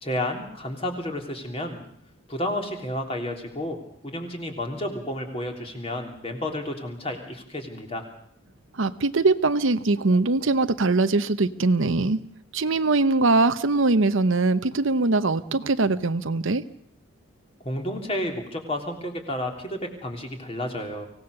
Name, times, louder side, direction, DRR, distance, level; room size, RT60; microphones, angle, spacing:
voice 1, 0.0-1.8 2.3-8.0 17.6-21.1, left 1 dB, 30° left, 3 dB, 3.3 m, -31 dB
voice 2, 8.7-12.2 12.5-16.6, right 3 dB, 65° right, 12 dB, 0.8 m, -22 dB
24.5 x 17.5 x 6.7 m, 0.63 s
head